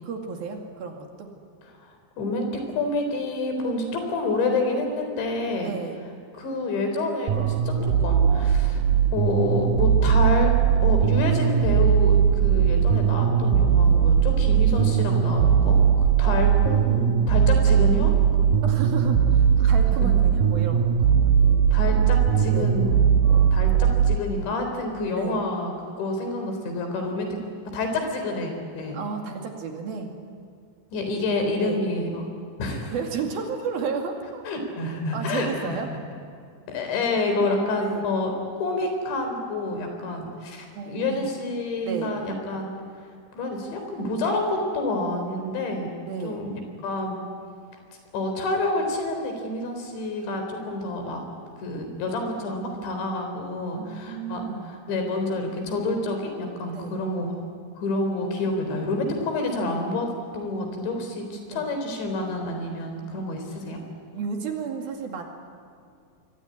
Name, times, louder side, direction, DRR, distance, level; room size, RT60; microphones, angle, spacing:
voice 1, 0.0-1.3 5.6-6.1 14.7-14.9 17.7-17.8 18.6-21.1 22.5-22.7 25.1-25.4 28.9-30.1 31.6-31.8 32.7-34.4 35.1-35.9 37.8-38.1 40.7-41.3 41.8-42.2 46.0-46.5 53.7-54.7 56.7-57.0 61.5-61.6 64.1-65.2, right 5 dB, 60° right, 3 dB, 4.0 m, -33 dB
voice 2, 1.8-5.7 6.4-8.8 9.1-10.5 10.8-15.8 16.2-18.1 18.4-18.5 19.6-19.8 21.7-23.1 23.5-25.7 26.0-27.4 27.7-29.0 30.9-32.3 32.6-32.9 34.5-35.8 36.7-42.7 43.3-46.0 46.2-46.5 46.8-47.2 48.1-51.2 51.6-57.3 57.8-63.8, left 2 dB, 80° left, 5 dB, 6.2 m, -28 dB
sound 1, 7.3-24.2, right 8 dB, 80° right, 2.0 m, -19 dB
26.5 x 21.5 x 9.6 m, 2.3 s
omnidirectional pair, 5.1 m